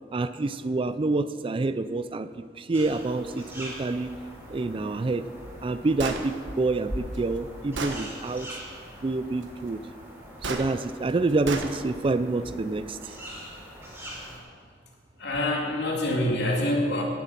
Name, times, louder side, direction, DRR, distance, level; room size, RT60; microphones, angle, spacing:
voice 1, 0.1-4.1 4.5-5.3 5.6-8.5 9.0-9.8 10.4-13.1, right 3 dB, 30° right, 13 dB, 0.4 m, -27 dB
sound 1, 2.7-14.4, equal, 10° right, 3.6 m, -42 dB
Gunshot gunfire, 6.0-6.2 7.1-7.2 7.8-8.0 10.4-10.7 11.5-11.7, right 3 dB, 75° right, 1.2 m, -31 dB
voice 2, 15.2-17.0, left 1 dB, 65° left, -2 dB, 2.7 m, -26 dB
17.0 x 7.7 x 5.8 m, 2.1 s
head